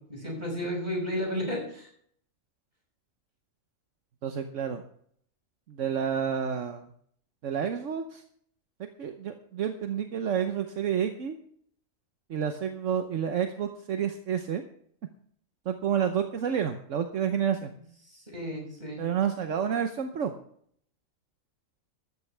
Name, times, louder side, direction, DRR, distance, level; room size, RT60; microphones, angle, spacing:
voice 1, 0.1-1.9 18.1-19.0, equal, 35° right, 0 dB, 6.0 m, -33 dB
voice 2, 4.2-4.8 5.7-6.9 7.4-8.2 9.0-11.3 12.3-14.6 15.7-17.7 19.0-20.3, right 8 dB, 70° right, 6 dB, 1.3 m, -29 dB
13.5 x 13.5 x 3.4 m, 0.63 s
omnidirectional pair, 1.3 m